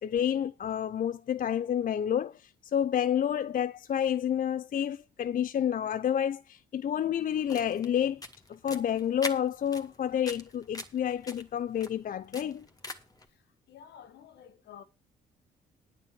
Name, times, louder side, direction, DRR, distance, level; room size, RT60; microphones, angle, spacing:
voice 1, 0.0-8.2 8.5-12.7, left 9 dB, 50° left, 0.5 m, -29 dB
sound 1, 7.3-13.2, left 2 dB, 20° left, 2.0 m, -44 dB
voice 2, 13.3-14.8, left 9 dB, 70° left, 1.5 m, -52 dB
9.5 x 8.7 x 6.0 m
supercardioid pair, 55°, 18 cm